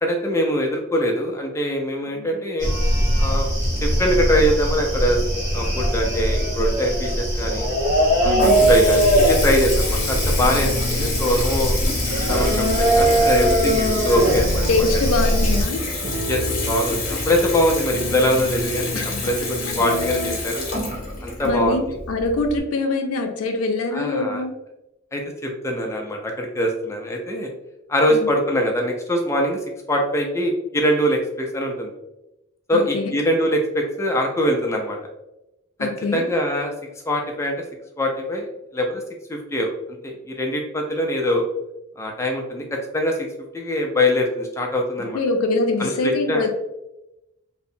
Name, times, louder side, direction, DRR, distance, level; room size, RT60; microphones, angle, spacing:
voice 1, 0.0-2.7 3.2-3.5 3.8-5.2 5.5-7.7 8.2-8.4 8.7-11.8 12.3-15.0 16.3-20.7 21.2-22.0 23.9-24.4 25.1-27.5 27.9-29.6 29.9-31.9 32.7-35.0 35.8-36.7 37.1-37.5 38.0-39.0 39.3-39.7 40.0-41.4 42.0-43.3 43.5-45.2 45.8-46.4, equal, 15° left, 1 dB, 0.3 m, -23 dB
sound 1, 2.6-15.6, right 1 dB, 35° right, 0.9 m, -20 dB
Water tap faucet / Bathtub (filling or washing) / Trickle dribble, 7.7-22.6, left 3 dB, 45° left, 0.7 m, -29 dB
voice 2, 8.2-8.7 14.7-15.8 18.9-19.3 21.4-24.5 28.1-28.3 32.7-33.1 35.8-36.2 45.1-46.5, left 3 dB, 80° left, 4 dB, 0.4 m, -24 dB
sound 2, 8.5-20.4, equal, 65° right, 0.5 m, -31 dB
2.7 x 2.0 x 2.6 m, 0.93 s
head